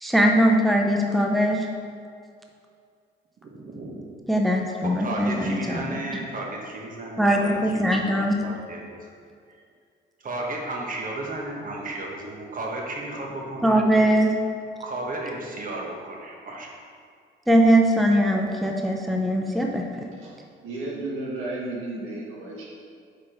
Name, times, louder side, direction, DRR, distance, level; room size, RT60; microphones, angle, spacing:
voice 1, 0.0-1.7 4.3-6.0 7.2-8.4 13.6-14.3 17.5-20.1, equal, ahead, 2 dB, 0.5 m, -21 dB
voice 2, 3.4-4.3 4.8-9.1 10.2-13.9 14.8-16.7, right 2 dB, 45° right, -1 dB, 1.2 m, -34 dB
voice 3, 20.6-22.6, right 2 dB, 90° right, -5 dB, 1.5 m, -33 dB
4.8 x 4.5 x 5.0 m, 2.2 s
cardioid pair, 90°, 20 cm